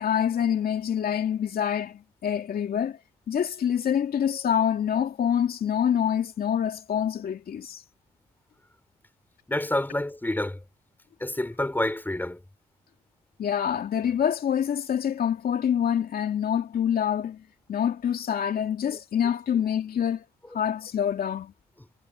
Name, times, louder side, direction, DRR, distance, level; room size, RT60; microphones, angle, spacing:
voice 1, 0.0-3.0 3.3-7.8 13.4-17.4 17.7-20.2 20.5-21.5, left 9 dB, 65° left, 2.6 m, -26 dB
voice 2, 9.5-10.6 11.2-12.4, left 1 dB, 10° left, 3.9 m, -28 dB
supercardioid pair, 50°, 17 cm